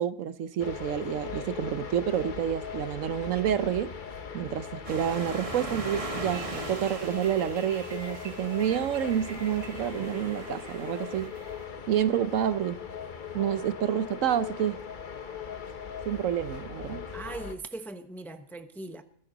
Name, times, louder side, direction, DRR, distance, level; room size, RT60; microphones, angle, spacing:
voice 1, 0.0-3.9 4.3-11.3 11.9-12.8 13.3-14.8 16.1-17.1, right 10 dB, 70° right, 1.0 m, -29 dB
sound 1, 0.6-17.5, left 7 dB, 40° left, 1.0 m, -39 dB
sound 2, 4.8-11.3, right 2 dB, 25° right, 1.5 m, -40 dB
sound 3, 6.3-11.6, right 4 dB, 50° right, 2.0 m, -48 dB
voice 2, 17.1-19.0, right 2 dB, ahead, 0.7 m, -40 dB
21.0 x 11.0 x 4.0 m
omnidirectional pair, 1.5 m